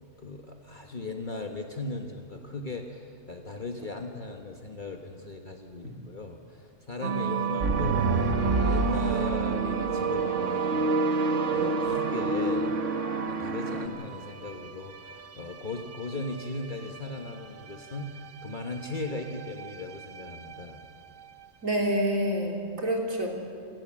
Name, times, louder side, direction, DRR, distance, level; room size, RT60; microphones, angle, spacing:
voice 1, 0.2-8.2 8.6-10.9 11.5-12.7 13.3-20.8, left 3 dB, 40° left, 3 dB, 1.4 m, -38 dB
sound 1, 7.0-21.5, right 8 dB, 50° right, 0.7 m, -35 dB
sound 2, 7.6-13.9, right 3 dB, 65° right, 1.7 m, -27 dB
voice 2, 21.6-23.3, equal, 80° right, 0 dB, 3.6 m, -27 dB
27.5 x 17.5 x 7.5 m, 2.5 s
omnidirectional pair, 1.4 m